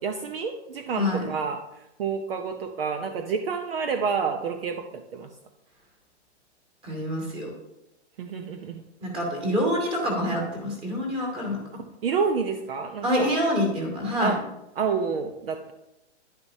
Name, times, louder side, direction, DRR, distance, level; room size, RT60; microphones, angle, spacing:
voice 1, 0.0-5.3 8.2-8.8 12.0-13.3 14.2-14.4 14.8-15.7, right 5 dB, 50° right, 6 dB, 0.8 m, -29 dB
voice 2, 0.9-1.3 6.8-7.5 9.0-11.6 13.0-14.4, equal, 15° right, 0 dB, 2.2 m, -26 dB
10.5 x 10.5 x 2.8 m, 0.90 s
hypercardioid pair, 170°, 36 cm